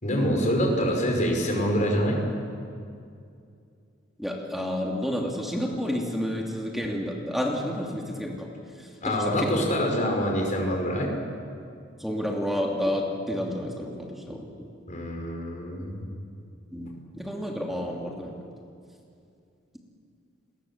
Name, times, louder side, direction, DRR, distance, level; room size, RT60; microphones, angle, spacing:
voice 1, 0.0-2.2 9.0-11.1 14.9-16.1, equal, 40° left, 1 dB, 5.3 m, -25 dB
voice 2, 4.2-8.5 8.8-9.6 12.0-14.7 16.7-18.4, equal, ahead, -1 dB, 2.7 m, -30 dB
30.0 x 21.5 x 7.4 m, 2.4 s
head